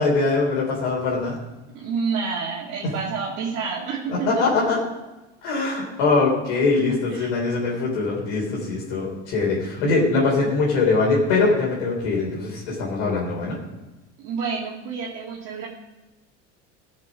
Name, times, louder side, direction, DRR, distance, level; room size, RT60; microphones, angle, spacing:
voice 1, 0.0-1.4 4.1-4.8 5.4-13.6, left 3 dB, 65° left, -4 dB, 3.5 m, -22 dB
voice 2, 1.7-4.5 7.0-7.4 14.2-15.7, right 5 dB, 50° right, -5 dB, 2.3 m, -29 dB
15.5 x 6.7 x 5.1 m, 1.1 s
hypercardioid pair, 85°, 35 cm